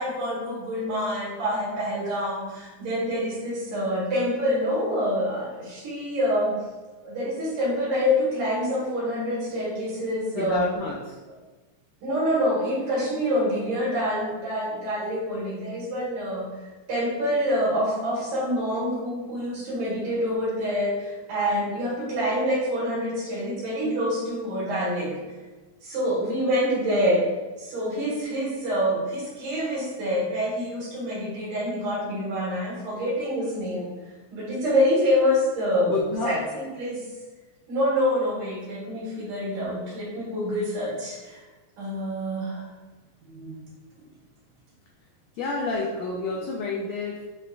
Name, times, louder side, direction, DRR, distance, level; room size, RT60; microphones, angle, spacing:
voice 1, 0.0-6.6 7.0-10.7 12.0-25.1 25.8-33.9 34.3-35.9 36.2-37.1 37.7-41.4 41.8-42.7 43.2-43.6, equal, 85° right, -8 dB, 2.9 m, -26 dB
voice 2, 10.3-11.2 35.8-36.4 45.3-47.3, left 3 dB, 90° left, -3 dB, 1.4 m, -29 dB
6.6 x 2.4 x 2.3 m, 1.2 s
omnidirectional pair, 3.5 m